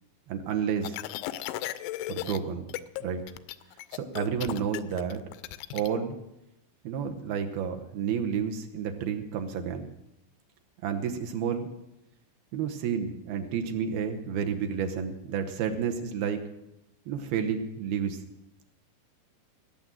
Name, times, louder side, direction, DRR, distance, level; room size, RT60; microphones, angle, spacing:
voice 1, 0.3-1.0 2.1-2.7 3.0-3.2 3.9-5.2 5.7-6.2 6.8-9.9 10.8-11.7 12.5-16.4 17.1-18.2, right 7 dB, 70° right, 5 dB, 2.5 m, -30 dB
sound 1, 0.8-2.4 2.7-3.0 3.3-5.9, left 15 dB, 85° left, 3.0 m, -36 dB
18.0 x 8.8 x 7.7 m, 0.88 s
omnidirectional pair, 5.2 m